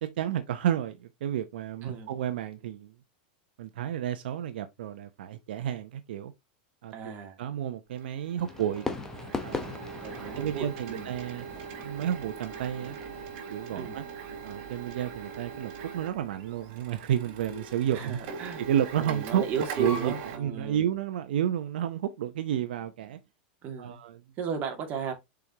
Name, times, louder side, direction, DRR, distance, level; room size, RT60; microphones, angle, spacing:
voice 1, 0.0-2.9 3.6-6.3 6.8-7.1 7.4-8.9 9.4-9.8 10.3-11.5 11.8-13.0 13.5-14.0 14.4-18.2 18.6-23.2 23.8-24.2, right 10 dB, 80° right, 0.8 m, -31 dB
voice 2, 6.9-7.4 10.0-11.1 13.7-14.0 17.9-18.6 19.0-20.8 23.6-24.0 24.4-25.1, right 6 dB, 35° right, 2.4 m, -35 dB
Printer, 7.9-20.4, right 5 dB, 50° right, 3.6 m, -41 dB
Fireworks, 8.4-13.4, left 3 dB, 10° left, 1.0 m, -39 dB
6.9 x 5.1 x 2.9 m
supercardioid pair, 155°, 5 cm